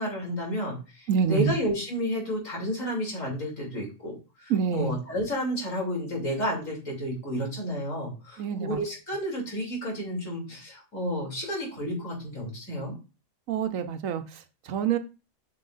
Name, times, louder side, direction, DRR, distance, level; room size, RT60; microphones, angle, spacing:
voice 1, 0.0-4.1 4.4-12.9, equal, 70° left, -2 dB, 3.3 m, -31 dB
voice 2, 1.1-1.5 4.5-4.9 8.4-8.8 13.5-14.2 14.7-15.0, right 7 dB, 75° right, 9 dB, 1.1 m, -26 dB
7.6 x 6.7 x 2.5 m, 0.31 s
omnidirectional pair, 1.4 m